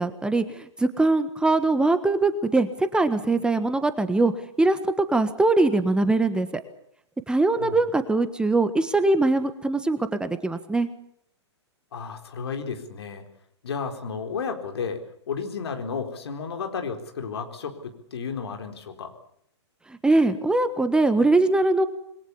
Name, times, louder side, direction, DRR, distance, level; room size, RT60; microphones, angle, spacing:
voice 1, 0.0-4.3 4.6-6.6 7.3-10.9 19.9-21.8, right 2 dB, 5° right, 10 dB, 1.4 m, -22 dB
voice 2, 11.9-13.3 13.6-15.0 15.3-19.1, left 5 dB, 60° left, 5 dB, 4.2 m, -32 dB
27.5 x 21.5 x 7.2 m, 0.70 s
figure-of-eight pair, 110°, 15 cm